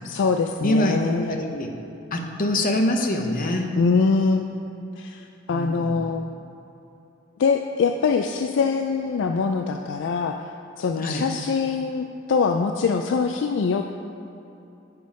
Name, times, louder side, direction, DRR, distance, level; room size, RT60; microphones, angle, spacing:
voice 1, 0.0-1.3 3.7-4.7 5.0-6.2 7.4-10.4 10.8-13.9, left 5 dB, 65° left, 5 dB, 0.3 m, -23 dB
voice 2, 0.6-1.0 1.3-1.7 2.1-3.6 5.5-5.9 11.0-11.3, left 1 dB, 45° left, 3 dB, 0.8 m, -24 dB
9.7 x 5.2 x 5.1 m, 2.8 s
head